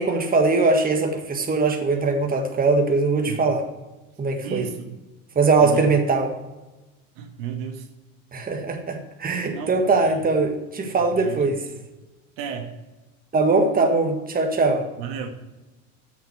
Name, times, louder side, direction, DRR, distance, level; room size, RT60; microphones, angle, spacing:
voice 1, 0.0-3.6 4.2-4.7 5.3-6.3 8.3-11.6 13.3-14.9, right 3 dB, 20° right, 3 dB, 1.6 m, -21 dB
voice 2, 4.4-5.0 5.6-5.9 7.2-7.9 9.5-10.2 10.9-11.6 12.4-12.7 15.0-15.3, right 7 dB, 70° right, 4 dB, 1.8 m, -34 dB
7.9 x 7.2 x 6.5 m, 1.1 s
supercardioid pair, 100°, 39 cm